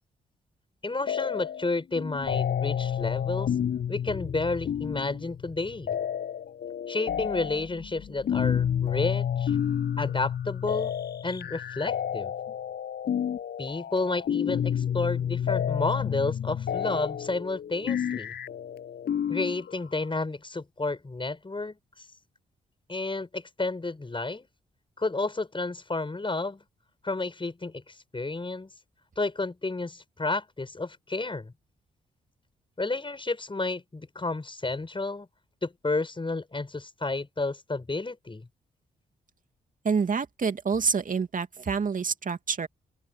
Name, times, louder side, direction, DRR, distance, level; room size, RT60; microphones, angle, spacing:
voice 1, 0.8-3.5 3.9-6.0 6.9-9.6 10.0-10.9 11.2-12.3 13.6-18.3 19.3-22.1 22.9-24.5 25.0-26.6 27.0-28.7 29.2-31.5 32.8-35.3 35.6-38.5, left 3 dB, 30° left, 7.2 m, -31 dB
sound 1, 1.1-1.7 2.0-20.2, left 9 dB, 65° left, 7.7 m, -30 dB
voice 2, 39.8-42.7, right 5 dB, 50° right, 2.7 m, -27 dB
open air
hypercardioid pair, 45°, 18 cm